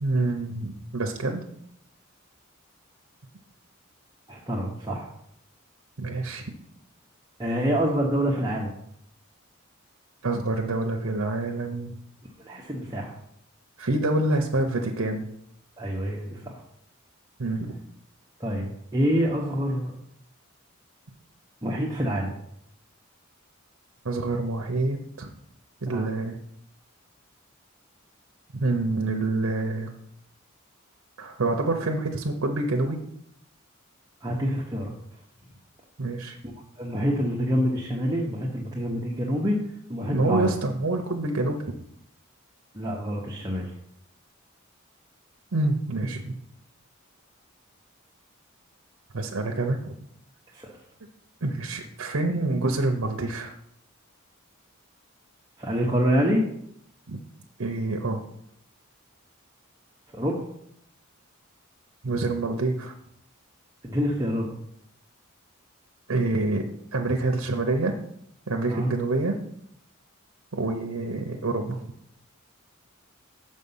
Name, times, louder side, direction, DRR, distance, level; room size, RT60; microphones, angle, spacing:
voice 1, 0.0-1.4 6.0-6.5 10.2-12.0 13.8-15.2 17.4-17.8 24.0-25.3 25.8-26.4 28.5-29.9 31.2-33.0 36.0-36.4 40.1-41.6 45.5-46.4 49.1-49.9 51.4-53.5 57.1-57.2 57.6-58.2 62.0-62.9 66.1-68.0 68.5-69.4 70.5-71.8, right 2 dB, 65° right, 3 dB, 0.8 m, -27 dB
voice 2, 4.3-5.1 7.4-8.7 12.4-13.1 15.8-16.6 18.4-20.0 21.6-22.3 25.9-26.1 34.2-34.9 36.8-39.6 39.9-40.5 42.7-43.7 50.5-50.8 55.6-56.4 60.1-60.5 63.8-64.5 68.7-68.9, equal, 15° right, -3 dB, 0.9 m, -26 dB
6.6 x 5.4 x 5.5 m, 0.73 s
head